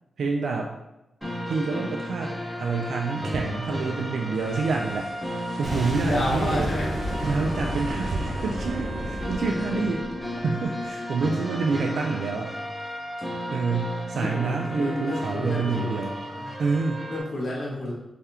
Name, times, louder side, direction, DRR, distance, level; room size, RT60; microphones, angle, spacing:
voice 1, 0.2-0.7 1.5-6.7 7.2-10.1 10.4-12.5 13.5-16.2 16.6-17.1, right 4 dB, 85° right, 1 dB, 0.3 m, -28 dB
sound 1, 1.2-17.2, equal, ahead, 1.1 m, -34 dB
sound 2, 4.3-9.7, left 2 dB, 80° left, 0.6 m, -48 dB
Boom, 5.6-10.5, right 1 dB, 55° right, 0.8 m, -31 dB
voice 2, 6.0-7.2 14.1-16.0 16.4-16.5 17.1-17.9, left 1 dB, 50° left, -4 dB, 1.0 m, -30 dB
3.5 x 3.4 x 2.8 m, 0.94 s
wide cardioid pair, 130°, 0 cm